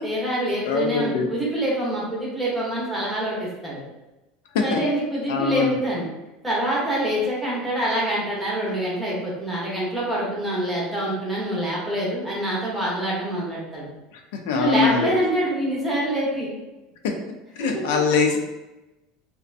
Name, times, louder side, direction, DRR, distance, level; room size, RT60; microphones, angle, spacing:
voice 1, 0.0-3.8 4.6-6.1 6.4-13.9 14.5-16.5 17.6-18.0, right 1 dB, 5° right, -6 dB, 0.7 m, -26 dB
voice 2, 0.6-1.3 4.5-4.8 5.3-5.8 14.3-15.1 17.0-17.1 17.6-18.4, left 5 dB, 85° left, 3 dB, 0.4 m, -22 dB
2.6 x 2.1 x 2.4 m, 1.0 s
cardioid pair, 165°, 0 cm